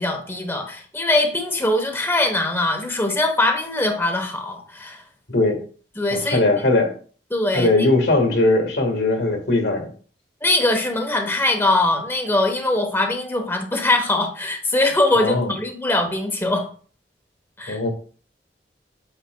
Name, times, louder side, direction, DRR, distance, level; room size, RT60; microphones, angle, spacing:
voice 1, 0.0-5.0 6.0-6.4 7.3-7.9 10.4-16.7 17.6-17.8, left 2 dB, 15° left, 3 dB, 0.9 m, -22 dB
voice 2, 6.1-6.9 7.5-9.9 15.1-15.5 17.7-17.9, left 2 dB, 75° left, 5 dB, 1.7 m, -19 dB
8.3 x 5.6 x 2.3 m, 0.43 s
head